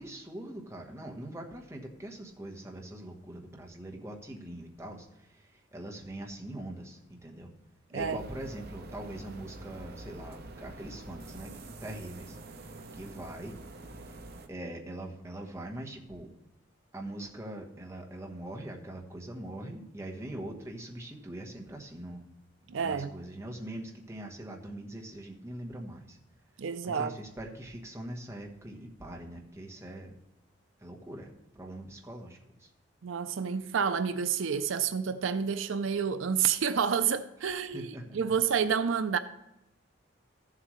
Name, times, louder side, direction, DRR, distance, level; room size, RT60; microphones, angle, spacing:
voice 1, 0.0-7.5 7.9-12.7 12.9-13.6 14.0-14.2 14.5-16.3 16.9-22.2 22.7-26.2 26.8-30.1 30.8-32.7 37.4-38.2, right 1 dB, 15° right, 1.2 m, -42 dB
sound 1, 8.0-14.5, right 2 dB, 50° right, 0.9 m, -46 dB
voice 2, 22.7-23.1 26.6-27.1 33.0-39.2, right 7 dB, 75° right, 0.5 m, -29 dB
14.0 x 7.6 x 3.2 m
head